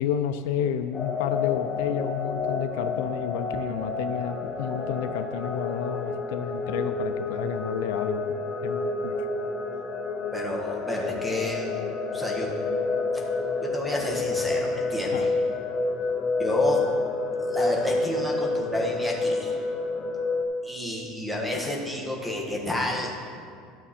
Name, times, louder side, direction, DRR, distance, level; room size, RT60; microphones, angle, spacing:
voice 1, 0.0-8.2 8.6-9.1 15.1-15.3, left 9 dB, 80° left, 9 dB, 0.5 m, -30 dB
sound 1, 0.9-20.4, left 3 dB, 20° left, 0.9 m, -29 dB
voice 2, 10.3-11.7 12.1-12.5 13.6-15.3 16.4-16.8 17.5-19.6 20.6-23.1, left 1 dB, 5° right, 0 dB, 1.4 m, -30 dB
12.5 x 6.9 x 4.3 m, 2.2 s
cardioid pair, 150°, 0 cm